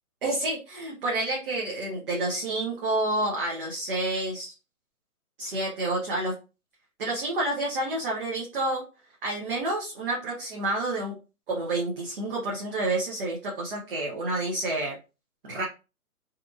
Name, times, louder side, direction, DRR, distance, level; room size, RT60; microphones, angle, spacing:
voice 1, 0.2-4.5 5.4-6.3 7.0-8.8 9.2-11.1 11.5-14.9 15.4-15.7, right 2 dB, 40° right, -3 dB, 0.7 m, -29 dB
2.8 x 2.5 x 2.3 m, 0.31 s
hypercardioid pair, 145°, 44 cm